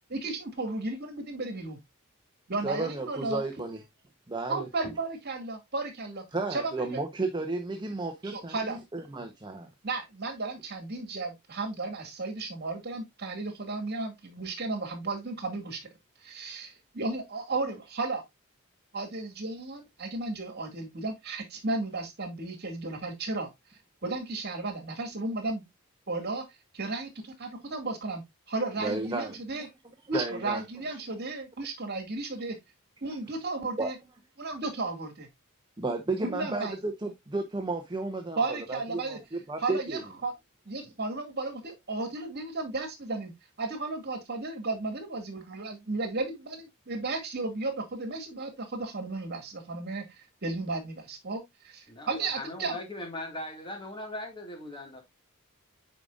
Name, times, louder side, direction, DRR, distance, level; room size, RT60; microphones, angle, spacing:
voice 1, 0.1-1.8 2.5-3.4 4.5-6.2 6.5-7.0 8.2-8.8 9.8-15.8 16.2-18.2 18.9-23.5 24.0-25.6 26.1-26.4 26.7-29.7 30.1-32.6 33.0-34.0 34.4-35.3 36.2-36.8 38.4-39.2 39.6-40.3 40.7-43.3 43.6-52.8, right 3 dB, 50° right, 2.1 m, -34 dB
voice 2, 2.6-3.8 4.3-4.7 6.3-9.7 28.8-29.7 30.1-30.6 33.8-33.9 35.8-40.0, right 3 dB, 20° right, 0.8 m, -33 dB
voice 3, 51.9-55.0, left 1 dB, 20° left, 2.0 m, -39 dB
9.1 x 5.0 x 2.4 m
head